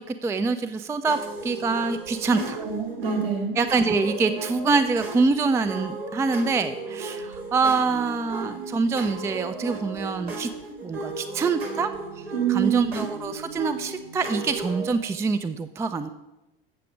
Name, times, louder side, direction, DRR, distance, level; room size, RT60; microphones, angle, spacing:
voice 1, 0.0-2.6 3.6-10.5 10.8-11.9 12.2-16.1, right 4 dB, 10° right, 10 dB, 0.3 m, -25 dB
sound 1, 1.1-14.9, right 3 dB, 85° right, 1.9 m, -35 dB
voice 2, 2.3-3.6 12.3-13.0, right 7 dB, 60° right, 1 dB, 2.1 m, -26 dB
8.4 x 6.6 x 5.0 m, 0.98 s
hypercardioid pair, 80°, 30 cm